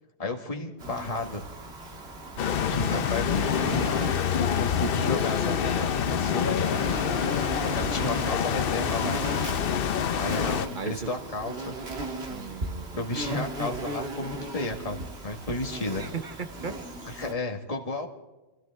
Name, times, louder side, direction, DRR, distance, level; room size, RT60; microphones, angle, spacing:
voice 1, 0.2-1.4 2.7-3.4 3.7-3.9 4.5-6.7 7.7-9.2 10.2-11.7 13.0-15.0 15.2-16.0 17.0-18.1, left 2 dB, 35° left, 2 dB, 1.7 m, -32 dB
Insect, 0.8-17.3, right 1 dB, 75° right, 2.1 m, -37 dB
sound 1, 2.4-10.7, left 8 dB, 60° left, 0.8 m, -26 dB
voice 2, 2.9-3.5 7.6-7.9 10.7-11.3 11.6-11.7 12.3-13.0 16.0-16.9, right 5 dB, 50° right, 8 dB, 1.2 m, -38 dB
28.5 x 13.5 x 3.5 m, 1.1 s
omnidirectional pair, 1.1 m